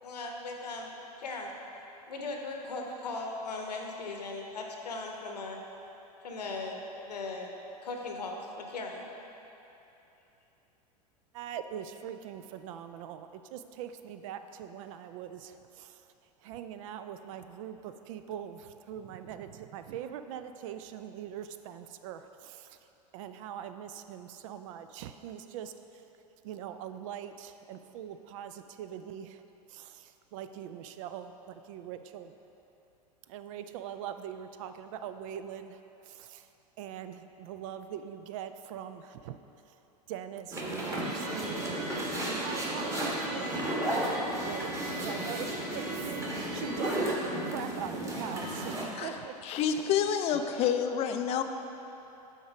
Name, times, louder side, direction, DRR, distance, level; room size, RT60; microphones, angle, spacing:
voice 1, 0.0-1.5 2.1-5.6 6.2-7.5 7.8-9.1, left 3 dB, 80° left, 1 dB, 0.9 m, -38 dB
voice 2, 11.3-16.1 16.4-22.8 23.1-26.0 26.4-29.4 29.7-32.3 33.3-36.5 36.8-39.4 39.7-39.8 40.1-49.6, right 9 dB, 55° right, 9 dB, 0.4 m, -42 dB
sound 1, 40.5-48.9, right 1 dB, 15° right, 1.3 m, -34 dB
sound 2, 40.9-47.0, right 2 dB, 75° right, 0.9 m, -41 dB
voice 3, 49.5-51.4, left 8 dB, 30° left, 7 dB, 0.4 m, -28 dB
6.5 x 4.4 x 4.9 m, 2.9 s
hypercardioid pair, 90°, 21 cm